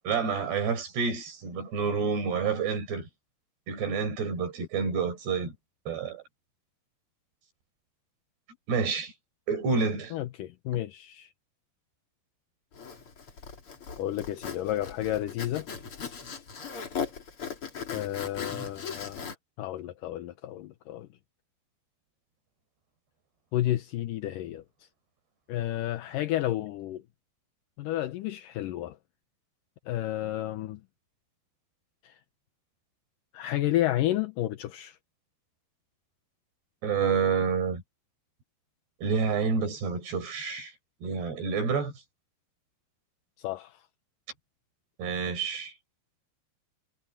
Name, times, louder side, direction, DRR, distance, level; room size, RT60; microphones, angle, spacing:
voice 1, 0.1-3.1 3.7-5.5 5.9-6.2 8.7-9.1 9.5-10.1 36.8-37.8 39.0-40.7 41.0-41.9 45.0-45.7, right 5 dB, 75° right, 7.0 m, -28 dB
voice 2, 10.1-11.3 14.0-15.7 17.9-19.3 19.6-21.1 23.5-24.6 25.5-27.0 27.8-29.0 29.9-30.8 32.0-32.2 33.3-35.0 43.4-43.8, left 14 dB, 70° left, 2.1 m, -31 dB
Zipper (clothing), 12.7-19.4, left 6 dB, 35° left, 3.1 m, -38 dB
omnidirectional pair, 4.9 m